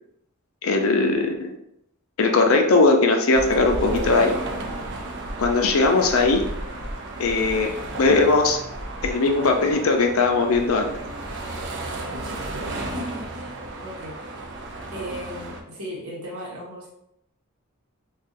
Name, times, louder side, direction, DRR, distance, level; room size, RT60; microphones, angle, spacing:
voice 1, 0.6-1.6 2.2-4.3 5.4-6.4 7.2-7.7 8.0-8.6 9.0-10.9, left 3 dB, 70° left, 4 dB, 0.5 m, -19 dB
sound 1, 3.3-15.6, right 2 dB, 60° right, 0.5 m, -33 dB
voice 2, 12.9-14.2 14.9-16.9, equal, 80° right, -4 dB, 0.9 m, -36 dB
2.6 x 2.4 x 3.8 m, 0.78 s
head